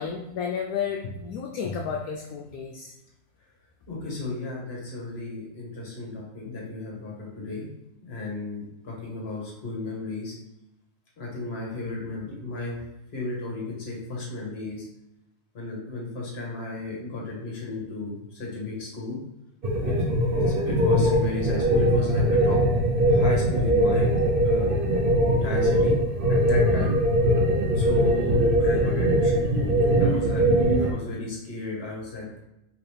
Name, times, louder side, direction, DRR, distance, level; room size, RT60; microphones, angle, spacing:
voice 1, 0.0-2.9, left 6 dB, 75° left, 1 dB, 1.0 m, -32 dB
voice 2, 3.9-7.7 8.0-10.3 11.2-12.8 13.1-14.9 15.5-19.2 19.8-22.6 23.0-24.1 24.4-24.8 25.3-26.0 26.3-26.9 27.7-29.5 30.0-30.4 30.8-32.4, left 2 dB, 45° left, -3 dB, 1.5 m, -34 dB
sound 1, 19.6-30.9, equal, 50° right, 0.7 m, -21 dB
4.9 x 3.1 x 3.3 m, 0.88 s
omnidirectional pair, 1.6 m